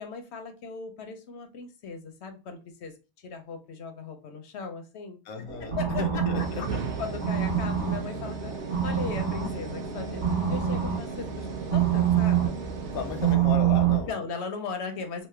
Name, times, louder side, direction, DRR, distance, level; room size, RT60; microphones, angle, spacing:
voice 1, 0.0-5.2 5.6-6.7 7.0-10.2 10.5-12.5 14.1-15.3, left 5 dB, 65° left, 6 dB, 0.7 m, -38 dB
voice 2, 5.2-6.8 12.9-14.2, left 6 dB, 85° left, 6 dB, 1.1 m, -35 dB
sound 1, 5.5-14.1, right 10 dB, 40° right, 1.0 m, -27 dB
sound 2, 6.3-13.4, right 4 dB, 65° right, 0.8 m, -36 dB
3.1 x 2.0 x 3.1 m, 0.30 s
omnidirectional pair, 1.5 m